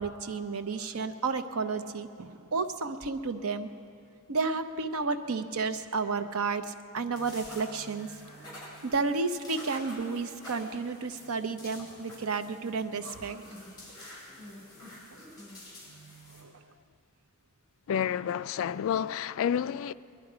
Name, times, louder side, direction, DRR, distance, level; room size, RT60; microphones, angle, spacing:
voice 1, 0.0-3.7 4.3-8.5 8.8-13.4 16.3-16.6, right 4 dB, 75° right, 0.7 m, -32 dB
sound 1, 7.1-16.4, left 1 dB, 20° left, 4.8 m, -48 dB
voice 2, 17.9-19.9, left 8 dB, 65° left, 0.3 m, -29 dB
20.5 x 11.5 x 5.0 m
head